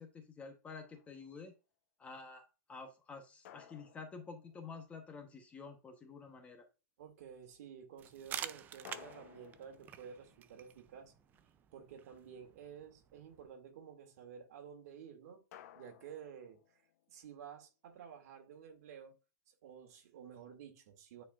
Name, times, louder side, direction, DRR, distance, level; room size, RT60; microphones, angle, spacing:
voice 1, 0.0-1.5 2.0-6.7, left 4 dB, 15° left, 0.9 m, -50 dB
sound 1, 0.8-1.4 3.4-5.3 8.8-11.5 15.5-17.2, left 11 dB, 60° left, 0.9 m, -59 dB
voice 2, 7.0-11.1 11.7-15.4 15.7-16.8 17.1-19.1 19.6-21.2, right 7 dB, 60° right, 2.1 m, -52 dB
sound 2, 8.0-13.5, right 10 dB, 20° right, 0.4 m, -49 dB
10.0 x 4.3 x 2.4 m
supercardioid pair, 155°, 9 cm